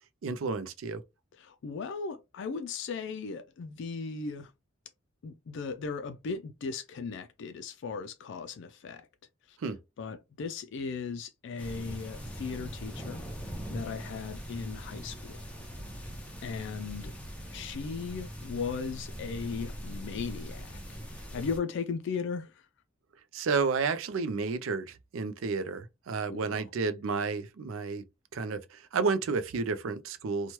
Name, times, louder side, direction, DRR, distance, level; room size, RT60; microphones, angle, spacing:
voice 1, 0.2-1.0 9.6-9.8 23.3-28.0 28.3-30.5, right 4 dB, 70° right, 0.4 m, -31 dB
voice 2, 1.4-4.5 5.2-9.1 9.5-9.6 10.0-13.2 13.7-15.4 16.4-17.1 17.5-22.7 26.3-26.6, left 5 dB, 60° left, 0.3 m, -37 dB
sound 1, 11.6-21.6, equal, 5° left, 0.6 m, -41 dB
3.0 x 2.2 x 2.9 m
head